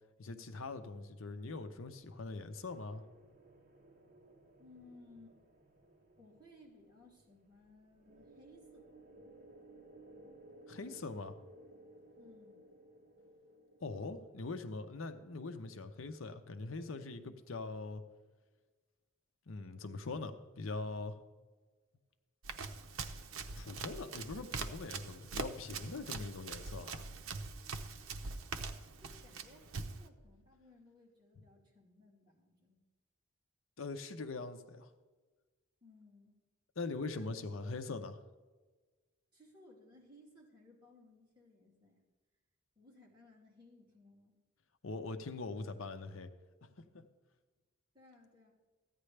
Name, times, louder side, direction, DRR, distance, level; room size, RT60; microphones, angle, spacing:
voice 1, 0.2-3.0 10.7-11.3 13.8-18.0 19.5-21.2 23.6-27.0 33.8-34.9 36.8-38.2 44.8-46.3 46.6-47.1, left 3 dB, 80° left, 8 dB, 0.7 m, -42 dB
sound 1, 1.3-15.2, right 1 dB, 40° right, 1.2 m, -60 dB
voice 2, 4.6-5.4 6.2-8.9 12.2-12.6 29.0-32.8 35.8-36.4 37.1-37.8 39.3-42.0 42.8-44.4 47.9-48.5, left 2 dB, 20° right, -5 dB, 2.6 m, -61 dB
Run, 22.4-30.1, right 4 dB, 80° right, 0.7 m, -43 dB
14.5 x 9.4 x 3.3 m, 1.3 s
head